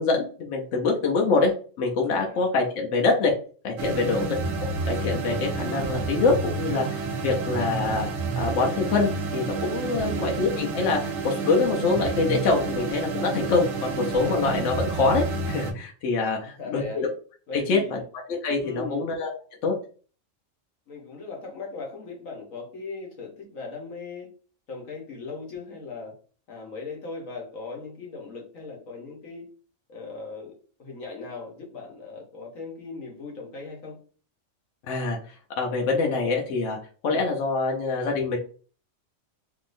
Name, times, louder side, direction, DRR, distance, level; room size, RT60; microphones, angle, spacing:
voice 1, 0.0-3.3 3.6-4.3 4.6-8.1 8.4-17.1 17.5-18.0 18.4-19.3 19.6-19.7 34.9-35.2 35.6-36.8 37.0-38.4, left 3 dB, 70° left, 1.0 m, -25 dB
voice 2, 2.2-2.5 3.8-4.2 9.9-10.2 16.3-17.0 17.5-18.0 18.6-19.0 20.9-24.3 24.7-26.1 26.5-29.4 29.9-30.5 30.8-34.0, left 4 dB, 90° left, 1.5 m, -38 dB
sound 1, 3.8-15.7, right 4 dB, 85° right, 1.1 m, -29 dB
3.6 x 2.9 x 2.5 m
omnidirectional pair, 1.3 m